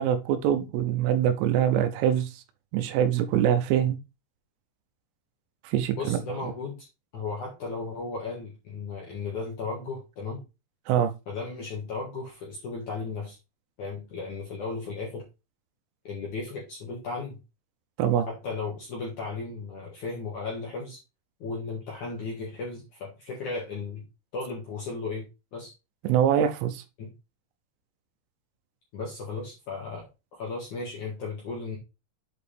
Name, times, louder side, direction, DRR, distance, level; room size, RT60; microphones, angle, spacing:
voice 1, 0.0-2.3 2.7-4.0 5.6-6.2 10.9-11.1 18.0-18.3 26.0-26.8, right 9 dB, 80° right, 3.4 m, -24 dB
voice 2, 6.0-6.9 7.1-10.4 11.3-13.4 13.8-15.2 16.0-17.4 18.3-21.0 21.4-24.0 24.3-25.3 25.5-25.7 27.0-27.1 28.9-31.8, left 4 dB, 55° left, 2.2 m, -35 dB
8.1 x 4.9 x 3.4 m
omnidirectional pair, 6.0 m